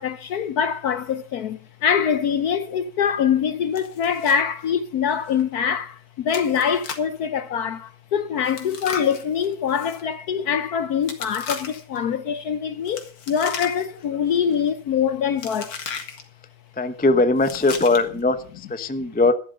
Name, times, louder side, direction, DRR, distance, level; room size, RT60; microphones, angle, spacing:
voice 1, 0.0-15.8, left 7 dB, 65° left, 1.0 m, -24 dB
Chewing mastication, 3.8-4.4 4.7-4.8 5.3-5.4 6.3-7.2 8.4-10.0 11.0-12.0 12.9-14.0 14.3-14.7 15.4-16.2 17.4-18.2, left 6 dB, 85° left, 2.7 m, -35 dB
voice 2, 16.7-19.3, left 2 dB, 15° left, 0.3 m, -20 dB
12.5 x 11.5 x 5.2 m
omnidirectional pair, 2.2 m